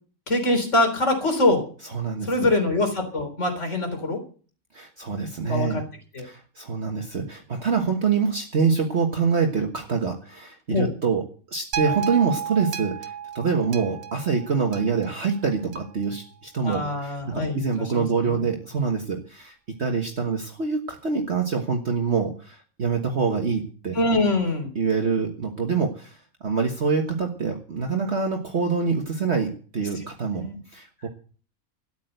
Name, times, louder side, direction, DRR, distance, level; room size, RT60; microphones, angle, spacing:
voice 1, 0.3-1.6 2.2-4.2 5.5-5.8 6.1-6.3 10.7-10.9 16.6-18.4 23.9-24.7 29.9-30.0 30.4-30.6, left 2 dB, 50° left, 5 dB, 4.0 m, -24 dB
voice 2, 1.9-2.5 4.7-5.8 6.2-19.5 19.8-24.0 24.8-30.4 30.7-31.1, right 5 dB, 45° right, 2 dB, 1.7 m, -25 dB
sound 1, 11.7-16.1 16.7-16.8, right 9 dB, 75° right, 1.4 m, -33 dB
13.5 x 9.3 x 7.9 m, 0.41 s
omnidirectional pair, 1.6 m